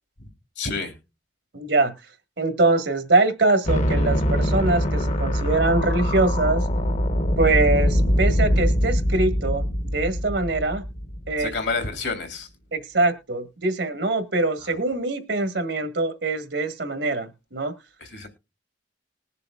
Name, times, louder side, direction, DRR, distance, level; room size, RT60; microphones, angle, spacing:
voice 1, 0.6-1.0 11.4-12.5 14.6-14.8 18.0-18.3, left 4 dB, 75° left, 3.0 m, -29 dB
voice 2, 1.5-1.9 2.4-6.6 7.4-9.6 9.9-10.8 11.3-11.5 12.7-17.7, right 2 dB, 80° right, 1.7 m, -23 dB
sound 1, 3.6-11.7, equal, 45° left, 0.9 m, -23 dB
20.5 x 6.8 x 2.4 m
head